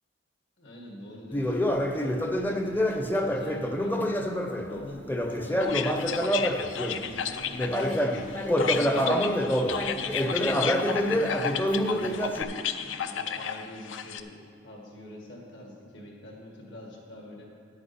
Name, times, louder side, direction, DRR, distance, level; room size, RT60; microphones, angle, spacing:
voice 1, 0.6-4.2 4.7-6.3 6.5-9.3 9.9-14.4 14.6-17.4, left 1 dB, 75° left, -1 dB, 2.0 m, -44 dB
Conversation, 1.3-7.1 7.5-12.4, equal, 10° left, 0.5 m, -27 dB
sound 1, 5.6-14.2, left 8 dB, 90° left, 0.5 m, -33 dB
10.5 x 8.8 x 4.4 m, 2.5 s
head